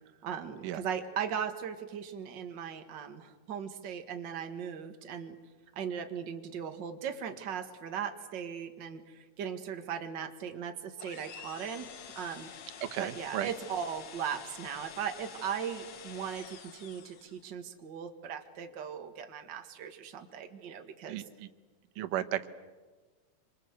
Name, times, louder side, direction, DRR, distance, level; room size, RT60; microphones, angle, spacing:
voice 1, 0.2-5.3 5.8-11.9 12.2-12.5 13.0-21.2, right 8 dB, 40° right, 6 dB, 2.0 m, -38 dB
sound 1, 11.0-17.5, left 7 dB, 55° left, 1.3 m, -48 dB
voice 2, 12.9-13.5 21.1-21.5 22.0-22.5, right 12 dB, 90° right, 8 dB, 2.6 m, -34 dB
26.5 x 26.0 x 8.2 m, 1.3 s
omnidirectional pair, 3.7 m